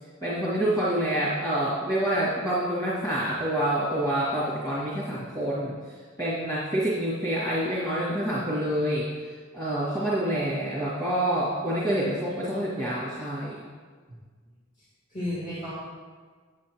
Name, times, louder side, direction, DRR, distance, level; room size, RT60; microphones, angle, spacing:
voice 1, 0.2-5.8 6.2-9.1 9.5-13.6, right 1 dB, 20° left, -10 dB, 2.0 m, -27 dB
voice 2, 14.8-15.7, left 1 dB, 40° left, -10 dB, 2.4 m, -34 dB
9.0 x 8.8 x 3.0 m, 1.6 s
head